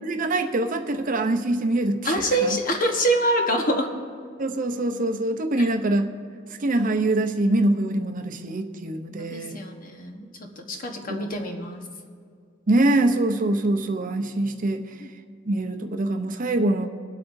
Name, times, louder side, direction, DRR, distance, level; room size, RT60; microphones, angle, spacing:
voice 1, 0.0-2.6 4.4-6.1 6.6-9.6 11.1-11.2 12.7-14.9 15.5-16.9, right 2 dB, 45° right, 6 dB, 0.7 m, -24 dB
voice 2, 2.0-3.9 5.6-5.7 9.2-10.3 10.6-11.8 15.0-15.1, right 1 dB, 45° left, 3 dB, 1.2 m, -25 dB
22.5 x 8.3 x 2.7 m, 2.2 s
head